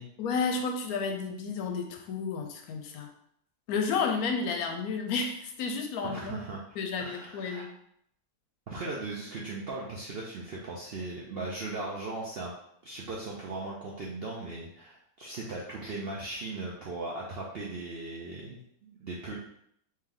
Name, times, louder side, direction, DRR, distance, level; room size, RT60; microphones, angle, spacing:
voice 1, 0.2-3.1 3.7-6.4 6.8-7.7, left 5 dB, 75° left, 4 dB, 1.0 m, -31 dB
voice 2, 6.0-6.6 7.0-7.6 8.7-12.5 12.8-19.3, right 2 dB, 65° right, -3 dB, 0.6 m, -38 dB
3.2 x 3.1 x 3.7 m, 0.70 s
omnidirectional pair, 1.7 m